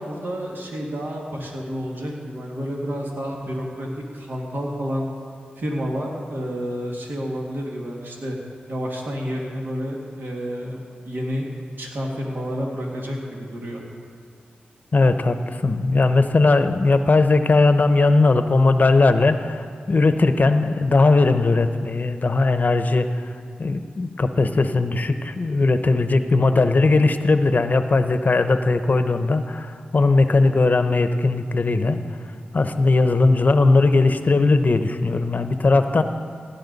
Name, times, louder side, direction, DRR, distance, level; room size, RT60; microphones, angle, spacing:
voice 1, 0.0-3.9 4.1-5.1 5.6-8.4 8.7-11.5 11.8-13.8, equal, 60° right, -1 dB, 2.1 m, -30 dB
voice 2, 14.9-23.2 23.6-32.0 32.5-36.0, left 3 dB, 50° left, 9 dB, 0.8 m, -18 dB
16.5 x 10.5 x 4.1 m, 2.1 s
cardioid pair, 45°, 4 cm